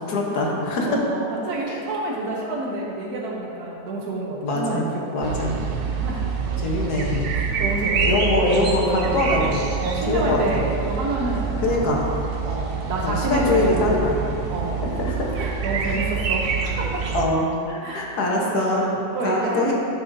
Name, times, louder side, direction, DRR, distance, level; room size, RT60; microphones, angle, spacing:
voice 1, 0.1-0.9 1.7-1.8 4.4-4.9 5.1-5.5 6.6-7.3 8.0-9.6 10.1-10.6 11.6-12.1 13.0-14.2 14.8-15.3 15.8-16.0 17.1-18.8 19.2-19.7, left 2 dB, 85° left, -2 dB, 1.6 m, -23 dB
voice 2, 0.8-5.2 6.0-6.2 7.6-8.2 8.7-8.9 9.8-12.0 12.4-14.2 14.5-14.9 15.4-17.1 17.8-18.1 18.5-19.7, right 2 dB, 85° right, -2 dB, 1.4 m, -28 dB
sound 1, 5.2-17.3, right 6 dB, 65° right, 0.5 m, -26 dB
10.5 x 6.1 x 2.7 m, 2.6 s
omnidirectional pair, 1.6 m